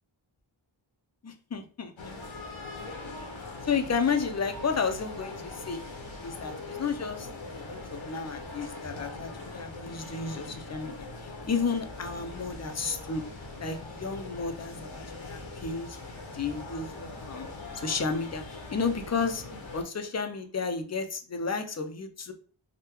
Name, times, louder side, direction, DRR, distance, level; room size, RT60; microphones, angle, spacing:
voice 1, 1.2-2.2 3.6-5.8 6.2-13.2 13.6-17.5 17.7-18.4 18.7-19.5 19.7-22.3, left 5 dB, 35° left, 6 dB, 0.4 m, -32 dB
sound 1, 2.0-19.8, left 2 dB, 70° left, 0.8 m, -42 dB
3.6 x 2.1 x 2.9 m, 0.41 s
wide cardioid pair, 80°, 49 cm